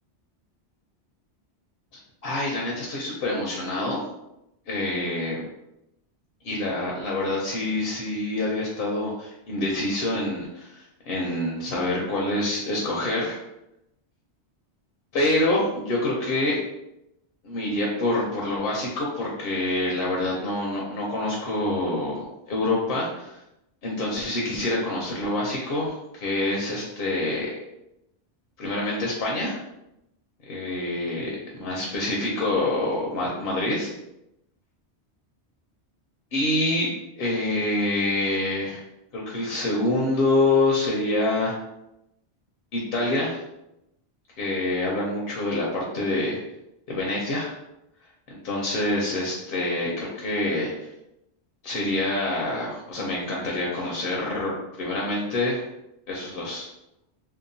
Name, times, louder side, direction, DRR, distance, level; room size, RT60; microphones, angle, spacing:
voice 1, 2.2-4.0 4.7-5.5 6.4-13.4 15.1-16.6 17.4-22.2 22.5-23.4 23.8-27.5 28.6-29.6 30.4-33.9 36.3-38.8 39.1-41.5 42.7-43.4 44.4-46.4 46.9-47.6 48.3-50.9 51.6-55.6 56.1-56.7, left 2 dB, 65° left, -3 dB, 0.7 m, -26 dB
2.8 x 2.1 x 2.6 m, 0.86 s
omnidirectional pair, 1.1 m